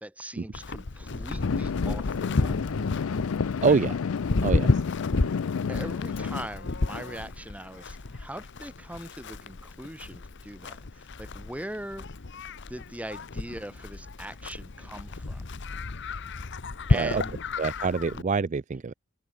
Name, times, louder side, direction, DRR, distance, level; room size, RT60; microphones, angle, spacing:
voice 1, 0.0-2.6 3.6-3.9 5.7-12.1 12.7-15.4 16.9-17.4, right 1 dB, 5° right, 2.9 m, -41 dB
Livestock farm animals working animals, 0.5-18.2, left 2 dB, 60° left, 1.0 m, -32 dB
sound 1, 1.4-6.5, left 6 dB, 80° left, 0.4 m, -30 dB
voice 2, 3.6-4.0 4.4-4.8 5.2-5.3 16.9-17.2 17.6-18.9, right 4 dB, 35° right, 0.4 m, -26 dB
head